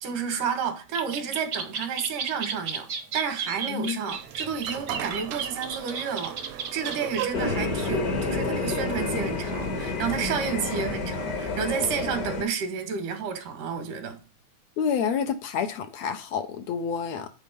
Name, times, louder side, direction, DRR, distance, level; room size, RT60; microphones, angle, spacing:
voice 1, 0.0-14.2, right 6 dB, 85° right, 3.2 m, -31 dB
sound 1, 0.9-7.3, right 6 dB, 50° right, 1.2 m, -33 dB
voice 2, 3.7-4.2 14.8-17.3, left 6 dB, 70° left, 2.1 m, -29 dB
sound 2, 4.1-9.4, right 10 dB, 70° right, 1.9 m, -38 dB
sound 3, 7.3-12.4, left 3 dB, 40° left, 1.4 m, -29 dB
9.2 x 4.5 x 5.3 m
omnidirectional pair, 3.5 m